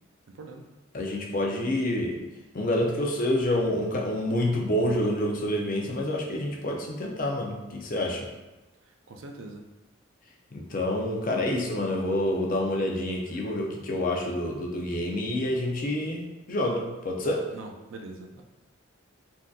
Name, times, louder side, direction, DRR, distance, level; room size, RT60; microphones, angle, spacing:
voice 1, 0.3-0.6 8.8-9.6 17.5-18.4, right 2 dB, 75° right, 3 dB, 0.4 m, -43 dB
voice 2, 0.9-2.2 2.5-8.3 10.5-17.5, left 1 dB, 45° left, 0 dB, 0.5 m, -28 dB
3.6 x 2.6 x 2.3 m, 1.1 s
head